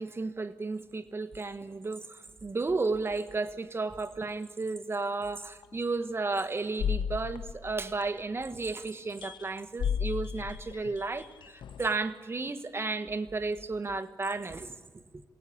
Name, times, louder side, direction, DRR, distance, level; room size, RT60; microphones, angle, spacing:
voice 1, 0.0-15.0, right 3 dB, 30° right, 1.5 m, -33 dB
sound 1, 5.6-5.8 6.8-8.4 9.2-9.5 9.8-12.0, left 7 dB, 85° left, 0.9 m, -34 dB
27.0 x 17.0 x 8.8 m
cardioid pair, 85°, 8 cm